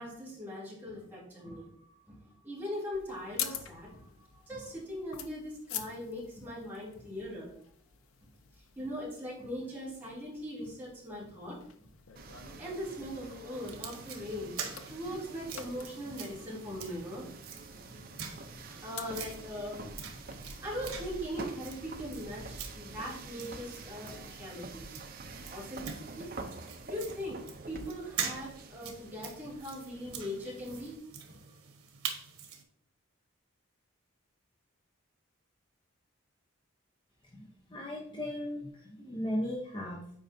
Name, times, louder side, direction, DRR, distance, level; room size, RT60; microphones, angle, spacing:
voice 1, 0.0-7.5 8.8-11.9 12.6-14.6 14.9-17.3 17.9-18.1 18.5-19.8 20.3-24.8 25.2-26.5 26.9-30.9 31.3-31.4, equal, 10° right, -8 dB, 2.8 m, -40 dB
sound 1, 2.9-20.3, left 9 dB, 80° left, 0.6 m, -47 dB
sound 2, 12.2-31.0, right 3 dB, 45° right, 0.6 m, -47 dB
sound 3, 13.5-32.6, right 7 dB, 85° right, 1.2 m, -45 dB
voice 2, 37.2-40.0, left 1 dB, 20° left, -2 dB, 0.8 m, -37 dB
8.7 x 4.8 x 2.7 m, 0.68 s
head